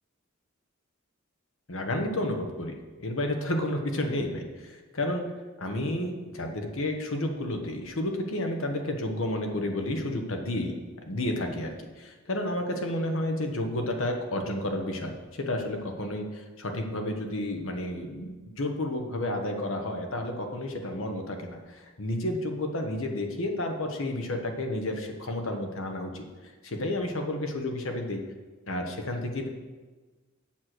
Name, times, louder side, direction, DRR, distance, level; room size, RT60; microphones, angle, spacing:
voice 1, 1.7-2.7 3.0-5.3 5.6-10.7 11.1-26.2 26.6-28.2 28.7-29.5, left 1 dB, 70° left, 4 dB, 1.2 m, -31 dB
7.4 x 6.4 x 6.1 m, 1.3 s
head